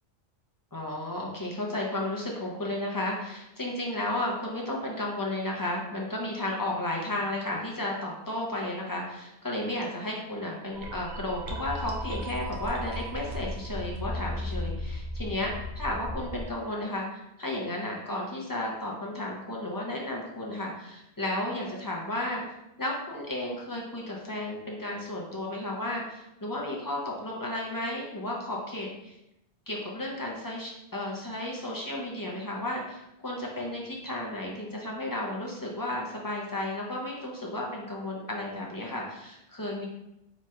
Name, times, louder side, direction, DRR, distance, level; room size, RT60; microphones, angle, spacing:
voice 1, 0.7-22.4 22.8-29.1 29.7-39.8, left 1 dB, 25° left, -2 dB, 0.5 m, -33 dB
sound 1, 10.7-16.4, left 1 dB, 55° right, 0.7 m, -35 dB
3.0 x 2.4 x 4.2 m, 0.86 s
omnidirectional pair, 1.1 m